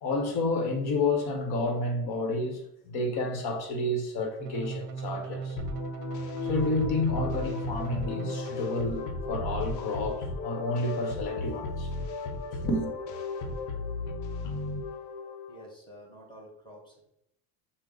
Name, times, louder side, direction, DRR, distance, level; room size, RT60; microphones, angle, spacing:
voice 1, 0.0-5.6 6.4-11.9 12.6-12.9, left 2 dB, 50° left, 1.1 m, -30 dB
sound 1, 4.4-8.5 9.2-9.8, right 5 dB, 50° right, 0.7 m, -37 dB
sound 2, 5.6-15.7, left 3 dB, 85° left, 0.8 m, -35 dB
voice 2, 15.5-17.1, equal, 10° left, 1.6 m, -49 dB
6.2 x 2.1 x 3.8 m
supercardioid pair, 115°, 49 cm